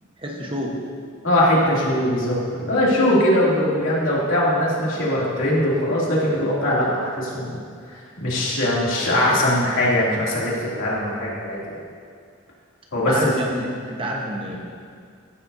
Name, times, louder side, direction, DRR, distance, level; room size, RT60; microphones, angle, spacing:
voice 1, 0.2-0.7 13.1-14.9, equal, 25° right, -1 dB, 1.1 m, -28 dB
voice 2, 1.2-7.6 7.9-11.8 12.9-13.2, left 1 dB, 75° left, -6 dB, 2.7 m, -21 dB
15.5 x 7.7 x 2.7 m, 2.2 s
head